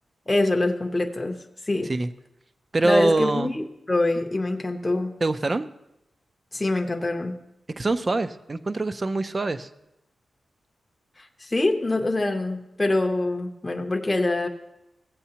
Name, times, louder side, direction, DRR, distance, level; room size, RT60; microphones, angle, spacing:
voice 1, 0.3-1.4 1.7-1.9 2.8-5.1 6.5-7.4 11.2-14.5, left 2 dB, 15° left, 3 dB, 0.6 m, -25 dB
voice 2, 2.7-3.5 5.2-5.7 7.8-9.7, right 2 dB, 25° right, 11 dB, 0.4 m, -24 dB
15.5 x 8.1 x 2.8 m, 0.87 s
wide cardioid pair, 160°, 0 cm